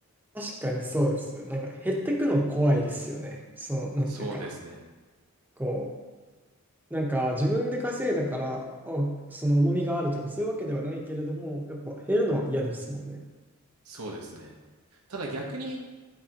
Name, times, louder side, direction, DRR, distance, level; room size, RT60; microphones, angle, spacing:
voice 1, 0.3-4.6 5.6-5.9 6.9-13.2, equal, 10° right, -1 dB, 0.9 m, -28 dB
voice 2, 4.1-4.8 13.8-14.5 15.1-15.8, right 2 dB, 90° right, -1 dB, 1.1 m, -36 dB
11.5 x 4.7 x 2.9 m, 1.3 s
head